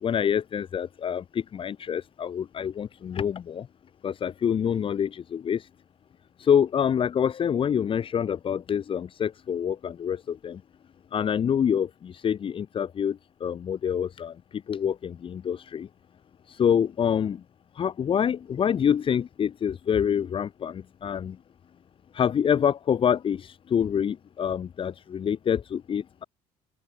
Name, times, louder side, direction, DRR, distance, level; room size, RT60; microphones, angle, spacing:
voice 1, 0.0-3.7 4.0-5.7 6.4-10.6 11.1-14.3 14.7-15.9 16.5-17.4 17.8-21.4 22.1-26.2, left 8 dB, 40° left, 1.6 m, -26 dB
open air
hypercardioid pair, 75°, 13 cm